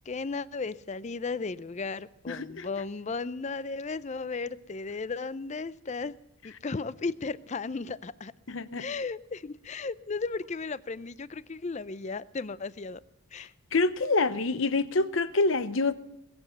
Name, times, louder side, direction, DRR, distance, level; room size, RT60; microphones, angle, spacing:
voice 1, 0.1-6.1 6.4-8.3 8.8-13.0 13.3-13.5, left 4 dB, 35° left, 17 dB, 0.5 m, -35 dB
voice 2, 2.3-2.7 8.5-8.8 13.4-15.9, left 3 dB, 65° left, 14 dB, 0.8 m, -27 dB
21.0 x 7.9 x 6.9 m, 0.85 s
head